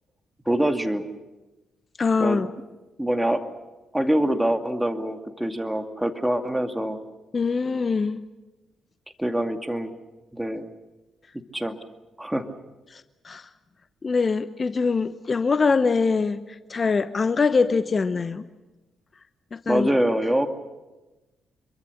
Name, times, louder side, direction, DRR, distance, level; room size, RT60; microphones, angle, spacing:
voice 1, 0.5-1.1 2.2-2.5 3.0-3.4 3.9-7.0 9.2-9.9 10.3-10.7 11.5-11.8 12.2-12.5 19.7-20.5, right 1 dB, 10° right, 6 dB, 2.3 m, -24 dB
voice 2, 2.0-2.5 7.3-8.2 12.9-13.5 14.0-16.4 16.7-18.4 19.5-19.9, left 4 dB, 40° left, 12 dB, 0.9 m, -23 dB
26.0 x 23.0 x 6.6 m, 1.1 s
hypercardioid pair, 45°, 0 cm